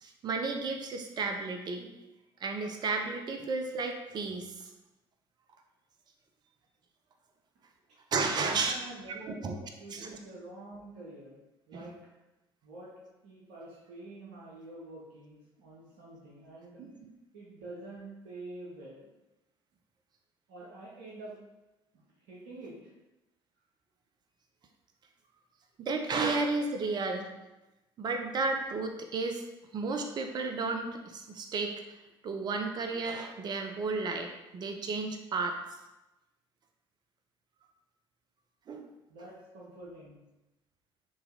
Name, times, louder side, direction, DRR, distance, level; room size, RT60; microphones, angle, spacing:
voice 1, 0.0-1.9 2.4-4.7 8.1-8.8 9.3-9.6 9.9-10.2 11.7-11.9 16.8-17.1 25.8-27.3 28.0-29.5 29.7-31.8 32.2-35.6 38.7-38.9, right 3 dB, 35° right, 4 dB, 0.5 m, -33 dB
voice 2, 8.4-11.4 11.7-12.1 12.6-12.9 13.2-16.8 17.3-19.1 20.5-21.4 21.9-22.9 39.1-40.2, right 2 dB, 65° right, -5 dB, 0.8 m, -47 dB
3.7 x 2.7 x 2.6 m, 0.99 s
figure-of-eight pair, 55°, 13 cm